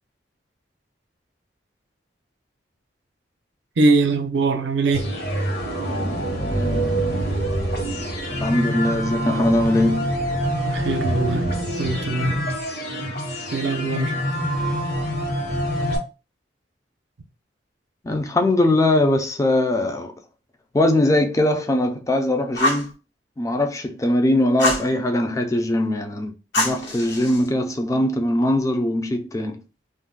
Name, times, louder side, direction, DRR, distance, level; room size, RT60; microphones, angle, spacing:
voice 1, 3.8-5.1 10.6-11.5 11.8-12.4 13.5-14.1, right 3 dB, 80° right, 0.5 m, -21 dB
sound 1, 4.9-16.0, equal, 60° left, 1.1 m, -25 dB
voice 2, 6.5-7.0 8.4-10.2 18.0-20.1 20.7-22.9 23.4-29.6, left 1 dB, 20° left, 0.4 m, -21 dB
Fire, 22.5-22.9 24.6-24.9 26.5-27.5, left 1 dB, 85° left, 1.2 m, -24 dB
2.5 x 2.1 x 3.7 m
head